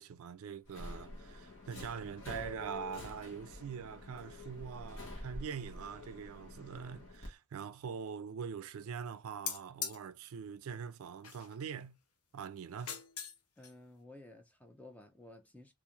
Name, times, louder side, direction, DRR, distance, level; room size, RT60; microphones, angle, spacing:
voice 1, 0.0-12.0 12.3-13.0, right 6 dB, 70° right, 0.3 m, -43 dB
Subway metro underground, 0.6-7.3, left 1 dB, 60° left, 0.9 m, -48 dB
sound 1, 9.5-10.0 11.2-11.7 12.7-13.4 13.6-13.7, left 7 dB, 85° left, 0.6 m, -41 dB
voice 2, 13.6-15.7, left 1 dB, 5° left, 0.3 m, -54 dB
2.5 x 2.4 x 2.8 m
head